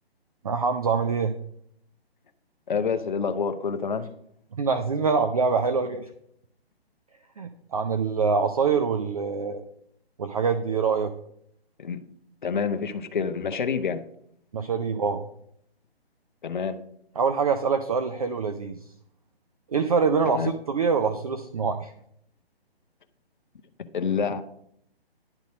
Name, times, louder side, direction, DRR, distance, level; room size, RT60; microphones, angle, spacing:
voice 1, 0.4-1.4 4.6-6.1 7.4-9.6 10.2-11.1 14.5-15.3 17.2-18.8 19.7-21.9, right 5 dB, 35° right, 0.5 m, -25 dB
voice 2, 2.7-4.1 11.8-12.0 12.4-14.0 16.4-16.8 20.2-20.5 23.9-24.4, left 6 dB, 50° left, 0.7 m, -27 dB
10.5 x 4.0 x 6.3 m
figure-of-eight pair, 145°, 32 cm